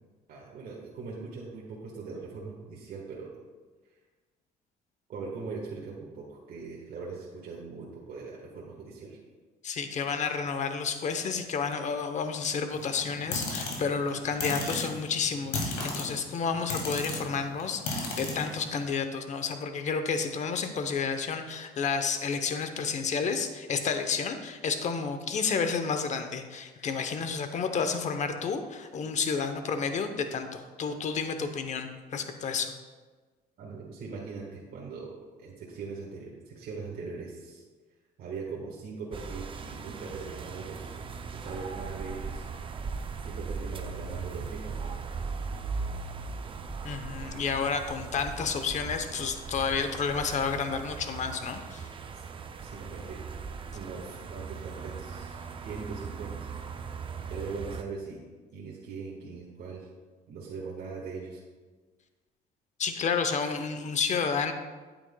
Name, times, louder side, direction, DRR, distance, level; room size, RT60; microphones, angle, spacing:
voice 1, 0.3-3.3 5.1-9.2 33.6-37.6 38.2-41.0 41.3-42.4 43.2-45.0 52.1-52.3 52.6-53.2 53.7-56.5 57.3-58.2 58.5-59.9 60.3-61.4, right 4 dB, 60° right, -4 dB, 1.4 m, -40 dB
voice 2, 9.6-32.7 46.8-51.9 62.8-64.5, left 5 dB, 45° left, 8 dB, 0.8 m, -31 dB
sound 1, 12.7-18.8, left 3 dB, 85° left, 2.2 m, -35 dB
sound 2, 39.1-57.8, right 5 dB, 30° right, 0.5 m, -39 dB
9.0 x 8.8 x 2.2 m, 1.4 s
cardioid pair, 110°, 17 cm